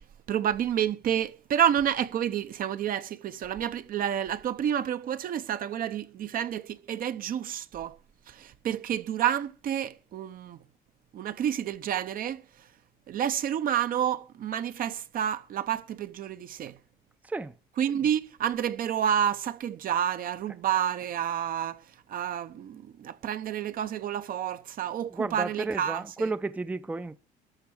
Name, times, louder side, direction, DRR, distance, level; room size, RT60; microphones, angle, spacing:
voice 1, 0.3-8.0 8.3-10.6 11.1-12.4 13.1-16.8 17.8-26.0, right 9 dB, 55° right, 0.9 m, -29 dB
voice 2, 17.2-17.6 25.1-27.2, right 3 dB, 10° right, 0.5 m, -32 dB
13.0 x 4.7 x 8.7 m
cardioid pair, 110°, 17 cm